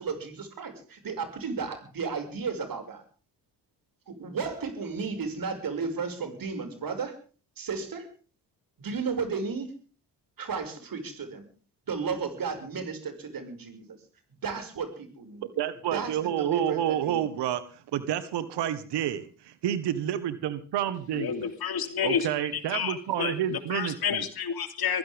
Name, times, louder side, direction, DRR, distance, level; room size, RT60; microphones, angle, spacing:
voice 1, 0.0-3.0 4.1-7.2 7.6-8.1 8.8-9.7 10.4-11.4 11.9-14.0 14.4-15.5 15.9-17.3, right 5 dB, 55° right, 8 dB, 6.0 m, -34 dB
voice 2, 15.4-21.5 22.0-24.2, right 10 dB, 80° right, 14 dB, 1.6 m, -29 dB
voice 3, 21.1-25.0, left 7 dB, 65° left, 9 dB, 3.2 m, -30 dB
23.0 x 15.5 x 3.6 m, 0.38 s
cardioid pair, 70°, 40 cm